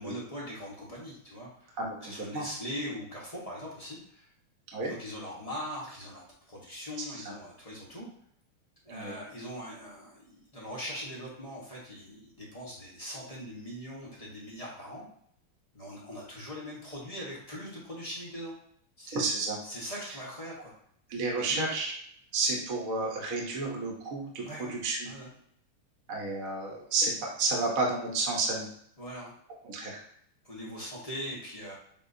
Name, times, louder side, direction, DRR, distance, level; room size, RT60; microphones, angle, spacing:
voice 1, 0.0-4.3 4.8-6.2 6.5-8.1 8.8-15.0 15.7-18.6 19.0-19.3 19.6-20.8 21.4-21.7 24.4-24.8 25.0-25.3 29.0-29.3 30.4-31.7, equal, 30° left, -5 dB, 0.7 m, -41 dB
voice 2, 19.1-19.6 21.1-21.9 22.3-25.1 26.1-28.7 29.6-30.0, right 3 dB, 50° right, -2 dB, 1.1 m, -31 dB
7.3 x 2.5 x 2.6 m, 0.67 s
omnidirectional pair, 2.4 m